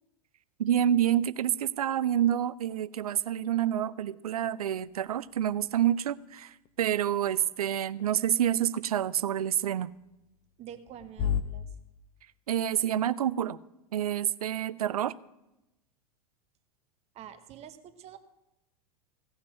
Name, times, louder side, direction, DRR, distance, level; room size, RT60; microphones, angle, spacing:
voice 1, 0.6-9.9 12.5-13.6 13.9-15.1, right 10 dB, 70° right, 18 dB, 0.5 m, -28 dB
sound 1, 4.7-11.4, left 9 dB, 35° left, 1.0 m, -39 dB
voice 2, 10.6-11.7 17.1-18.2, right 9 dB, 35° right, 9 dB, 1.1 m, -46 dB
16.5 x 5.9 x 7.4 m, 0.93 s
figure-of-eight pair, 90°, 20 cm